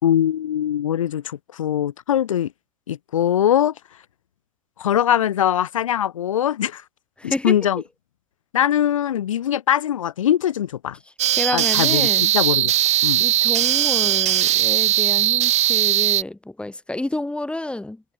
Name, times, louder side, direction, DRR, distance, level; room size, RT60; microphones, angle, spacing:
voice 1, 0.0-2.5 2.9-3.7 4.8-6.8 7.2-7.8 8.5-11.0 11.5-12.7 13.0-13.2, left 10 dB, 80° left, 4.4 m, -21 dB
voice 2, 7.2-7.6 11.3-12.3 13.2-18.0, left 2 dB, 5° left, 3.0 m, -29 dB
sound 1, 11.2-16.2, right 13 dB, 45° right, 5.5 m, -19 dB
hypercardioid pair, 85°, 17 cm